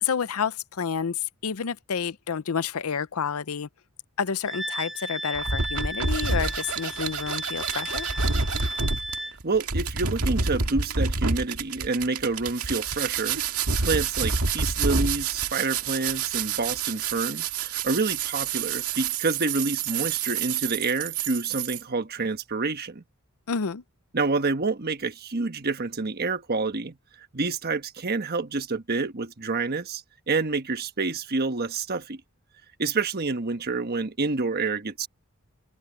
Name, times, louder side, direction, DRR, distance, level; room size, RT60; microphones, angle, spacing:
voice 1, 0.0-3.7 4.2-8.1 23.5-23.8, left 6 dB, 75° left, 0.6 m, -29 dB
Wind instrument woodwind instrument, 4.5-9.4, right 1 dB, ahead, 1.2 m, -34 dB
sound 1, 5.3-21.8, right 5 dB, 85° right, 1.9 m, -28 dB
voice 2, 9.1-13.4 13.8-23.0 24.1-27.0 27.3-32.2 32.8-35.1, right 3 dB, 45° right, 1.3 m, -28 dB
head